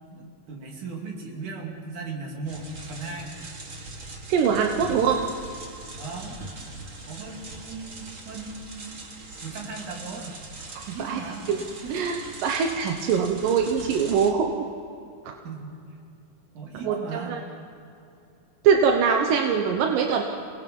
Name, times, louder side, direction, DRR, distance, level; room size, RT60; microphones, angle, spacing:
voice 1, 0.1-3.4 4.8-5.0 5.9-6.4 7.1-9.0 9.4-10.4 10.9-11.5 11.8-12.2 15.4-15.8 16.5-17.5, right 4 dB, 65° right, 0 dB, 4.1 m, -37 dB
sound 1, 2.5-14.3, right 2 dB, 40° right, 1.2 m, -41 dB
voice 2, 4.3-5.2 10.9-11.2 11.5-11.6 11.9-12.2 12.4-14.5 16.8-17.4 18.6-20.2, right 6 dB, 85° right, 3 dB, 2.8 m, -22 dB
28.0 x 19.5 x 5.4 m, 2.6 s
omnidirectional pair, 3.7 m